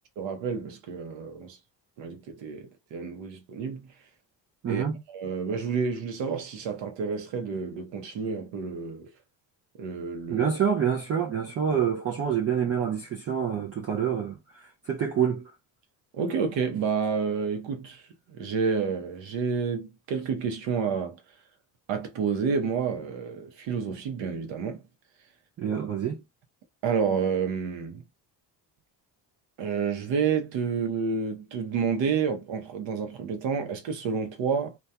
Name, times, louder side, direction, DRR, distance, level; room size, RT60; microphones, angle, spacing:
voice 1, 0.2-1.6 2.0-3.9 4.7-9.1 9.8-10.5 16.1-18.0 18.3-21.2 21.9-24.8 26.8-28.0 29.6-34.8, right 6 dB, 70° right, 0.8 m, -29 dB
voice 2, 4.6-5.0 10.3-15.5 25.6-26.2, right 8 dB, 35° right, 0.4 m, -27 dB
2.8 x 2.3 x 2.2 m
cardioid pair, 115°, 45 cm